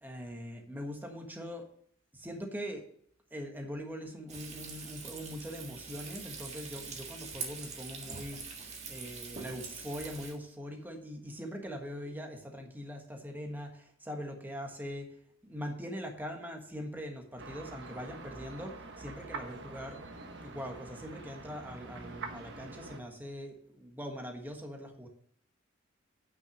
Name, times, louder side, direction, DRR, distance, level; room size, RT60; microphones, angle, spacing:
voice 1, 0.0-1.7 2.1-2.9 3.3-8.6 8.9-15.1 15.4-20.0 20.4-25.1, equal, 10° right, 3 dB, 1.4 m, -42 dB
Frying (food), 4.3-10.3, right 5 dB, 35° right, 1.7 m, -44 dB
sound 1, 17.4-23.0, right 3 dB, 55° right, 1.3 m, -45 dB
9.1 x 6.1 x 6.4 m, 0.65 s
head